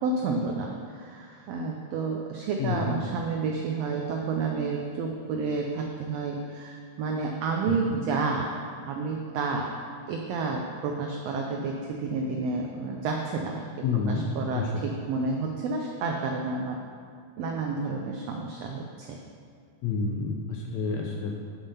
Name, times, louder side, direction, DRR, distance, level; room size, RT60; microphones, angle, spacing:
voice 1, 0.0-8.5 8.9-9.7 10.1-13.7 14.1-16.8 17.4-19.2, right 4 dB, 85° right, 1 dB, 1.4 m, -30 dB
voice 2, 13.8-14.8 19.8-21.3, left 4 dB, 80° left, 1 dB, 1.6 m, -29 dB
7.3 x 7.1 x 5.5 m, 2.2 s
omnidirectional pair, 3.7 m